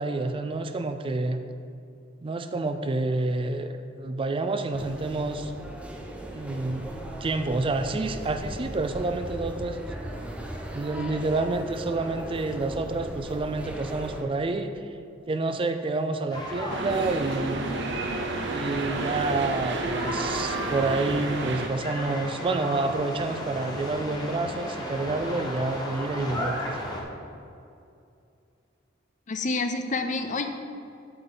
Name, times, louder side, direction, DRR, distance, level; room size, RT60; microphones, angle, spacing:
voice 1, 0.0-1.4 2.2-5.5 6.3-6.9 7.2-9.9 10.7-14.7 15.3-17.7 18.5-26.8, right 3 dB, 25° right, 8 dB, 0.4 m, -28 dB
sound 1, 4.7-14.2, right 1 dB, 5° right, 0.9 m, -38 dB
sound 2, 16.3-27.0, left 1 dB, 20° left, 1.2 m, -35 dB
sound 3, 16.7-21.7, right 2 dB, 65° right, 0.8 m, -31 dB
voice 2, 29.3-30.5, left 3 dB, 40° left, 7 dB, 0.6 m, -28 dB
9.1 x 7.8 x 3.9 m, 2.6 s
head